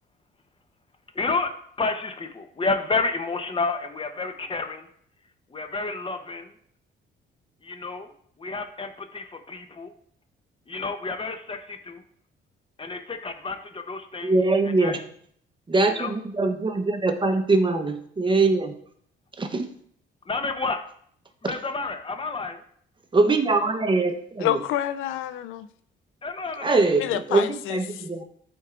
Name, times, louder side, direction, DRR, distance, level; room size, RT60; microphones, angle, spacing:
voice 1, 1.1-1.5 1.8-4.9 5.5-6.5 7.6-8.1 8.4-9.9 10.7-12.0 12.8-14.4 14.8-15.0 15.8-16.1 20.3-20.8 21.4-22.6 26.2-26.8, left 3 dB, 25° left, 7 dB, 0.8 m, -30 dB
voice 2, 14.2-15.0 15.7-18.7 19.4-19.7 23.1-24.5 26.6-28.2, right 3 dB, 25° right, 5 dB, 0.9 m, -22 dB
voice 3, 24.4-25.7 27.0-28.0, left 12 dB, 85° left, 12 dB, 0.4 m, -28 dB
11.0 x 4.4 x 2.5 m, 0.63 s
cardioid pair, 90°, 20 cm